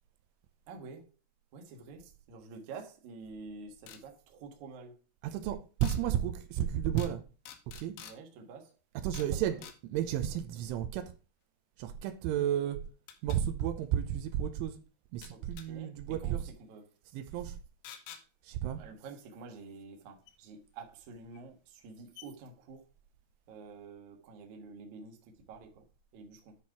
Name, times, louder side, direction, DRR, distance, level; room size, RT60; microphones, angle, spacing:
voice 1, 0.7-1.2 1.5-5.0 8.0-8.8 9.2-9.6 15.3-16.4 16.7-17.2 18.7-22.8 23.5-25.8 26.1-26.6, right 4 dB, 65° right, 1.9 m, -49 dB
sound 1, 3.9-4.0 5.8-6.0 7.0-7.2 7.5-8.2 9.1-9.3 9.6-9.8 12.0-12.1 13.1-13.4 15.2-15.7 17.9-18.2 20.3-20.4 21.3-21.4 21.8-21.9 22.2-22.3, left 9 dB, 75° left, 3.1 m, -48 dB
voice 2, 5.2-7.2 7.8-7.9 9.0-9.6 9.9-11.1 11.8-12.8 13.2-14.8 15.1-16.4 17.1-17.6 18.4-18.8, right 10 dB, 85° right, 3.2 m, -32 dB
10.5 x 4.4 x 4.8 m
omnidirectional pair, 5.6 m